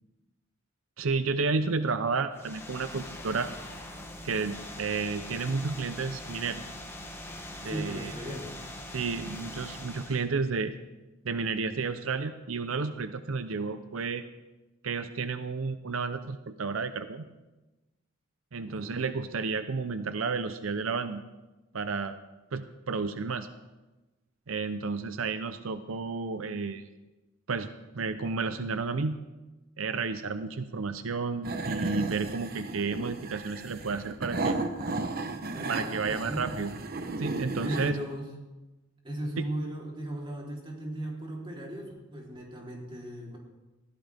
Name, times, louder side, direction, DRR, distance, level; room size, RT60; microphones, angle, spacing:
voice 1, 1.0-3.5 4.2-6.6 7.6-8.1 8.9-10.7 11.2-14.2 14.8-17.2 18.5-21.2 21.7-22.2 22.5-23.5 24.5-26.9 27.5-27.7 27.9-29.2 29.8-34.6 35.7-36.7 37.2-37.9 39.4-39.5, right 4 dB, 90° right, 10 dB, 0.7 m, -31 dB
sound 1, 2.3-10.3, left 1 dB, 15° left, 1.6 m, -42 dB
voice 2, 7.6-8.5 18.6-19.0 35.5-36.4 37.6-38.3 39.0-43.4, right 1 dB, 25° right, -2 dB, 3.6 m, -37 dB
sound 2, 31.4-37.9, right 3 dB, 50° right, 1.0 m, -34 dB
20.0 x 15.5 x 3.5 m, 1.1 s
head